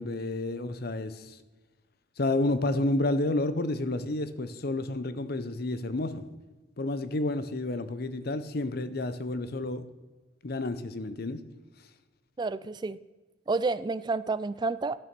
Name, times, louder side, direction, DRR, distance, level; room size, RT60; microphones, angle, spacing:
voice 1, 0.0-1.4 2.2-6.2 6.8-9.8 10.4-11.4, left 2 dB, 50° left, 12 dB, 0.7 m, -30 dB
voice 2, 12.4-13.0 13.5-15.0, right 3 dB, 20° right, 16 dB, 0.3 m, -30 dB
12.5 x 6.7 x 6.0 m, 1.2 s
head